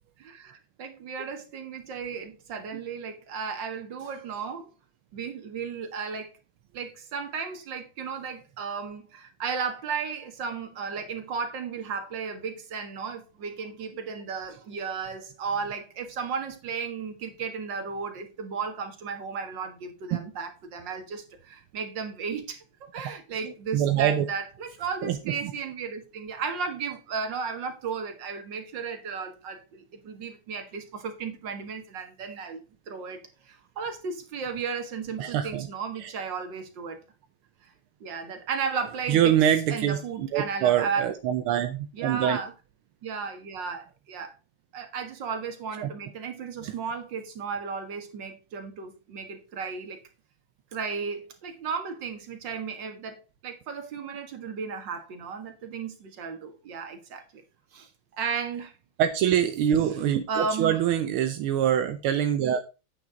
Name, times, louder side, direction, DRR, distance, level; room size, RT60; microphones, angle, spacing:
voice 1, 0.2-4.7 5.1-6.3 6.7-22.6 22.9-33.2 33.4-37.0 37.6-37.7 38.0-39.4 39.7-41.2 41.9-42.5 43.0-44.3 44.7-50.0 50.7-57.4 57.7-58.7 60.3-60.8, right 5 dB, 60° right, 2.2 m, -34 dB
voice 2, 23.4-24.3 25.0-25.2 25.4-25.5 35.2-35.7 36.0-36.1 39.1-42.4 45.8-45.9 46.6-46.7 59.0-62.6, right 10 dB, 85° right, 1.6 m, -25 dB
8.9 x 7.8 x 3.9 m
omnidirectional pair, 2.3 m